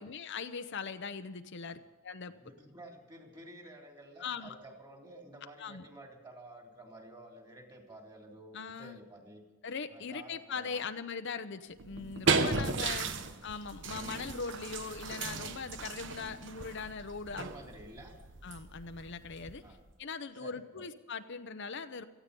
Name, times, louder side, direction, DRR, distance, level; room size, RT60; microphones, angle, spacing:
voice 1, 0.0-2.3 4.2-4.5 5.6-5.8 8.5-9.0 9.6-13.1 13.4-17.5 18.4-19.6 20.0-22.0, left 5 dB, 60° left, 9 dB, 0.7 m, -40 dB
voice 2, 2.3-9.4 9.9-10.8 12.3-13.2 17.3-18.1 19.6-19.8 20.3-20.8, right 1 dB, 20° right, 2 dB, 3.1 m, -52 dB
sound 1, 11.8-19.9, right 4 dB, 65° right, 1.1 m, -35 dB
18.0 x 14.5 x 5.3 m, 1.3 s
head